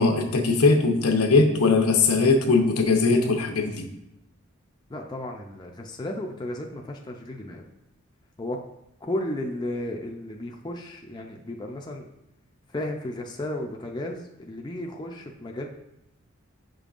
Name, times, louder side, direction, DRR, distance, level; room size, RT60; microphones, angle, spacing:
voice 1, 0.0-3.9, left 3 dB, 90° left, 4 dB, 0.8 m, -20 dB
voice 2, 4.9-7.6 8.4-8.6 9.0-12.1 12.7-15.7, left 1 dB, 20° left, 1 dB, 0.4 m, -34 dB
7.6 x 5.2 x 2.5 m, 0.85 s
head